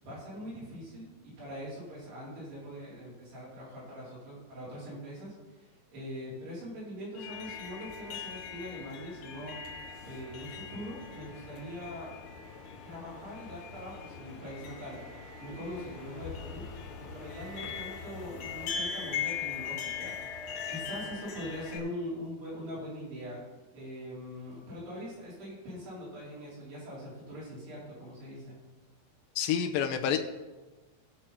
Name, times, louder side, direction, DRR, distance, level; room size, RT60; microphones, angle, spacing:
voice 1, 0.0-9.7 10.0-12.1 12.8-15.0 15.4-16.6 17.1-23.4 23.7-28.6, equal, 85° right, -7 dB, 6.7 m, -42 dB
sound 1, 7.1-21.8, left 7 dB, 55° left, 2.9 m, -40 dB
voice 2, 29.4-30.2, left 8 dB, 75° left, 4 dB, 2.3 m, -28 dB
18.0 x 6.4 x 4.4 m, 1.2 s
omnidirectional pair, 4.6 m